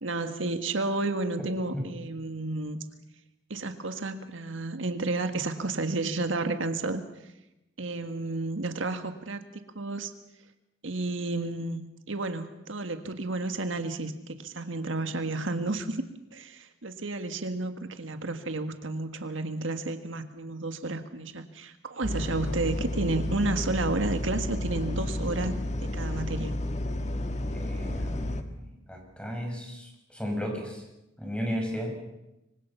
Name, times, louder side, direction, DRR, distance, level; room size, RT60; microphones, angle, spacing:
voice 1, 0.0-2.8 3.5-7.3 7.8-10.1 10.8-11.8 12.1-16.0 16.3-26.6, right 2 dB, 85° right, 7 dB, 1.7 m, -31 dB
sound 1, 22.0-28.4, left 1 dB, 35° left, 1.6 m, -31 dB
voice 2, 27.5-30.8 31.2-31.9, equal, 5° left, 2 dB, 6.2 m, -34 dB
25.5 x 24.5 x 5.7 m, 0.93 s
head